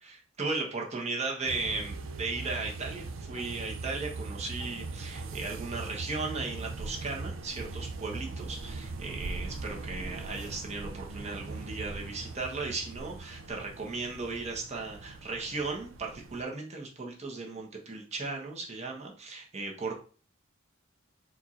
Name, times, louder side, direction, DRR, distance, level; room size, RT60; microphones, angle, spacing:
voice 1, 0.0-20.0, right 3 dB, 35° right, 0 dB, 1.1 m, -36 dB
sound 1, 1.4-16.4, right 3 dB, 80° right, 0.5 m, -40 dB
4.6 x 2.5 x 4.2 m, 0.38 s
head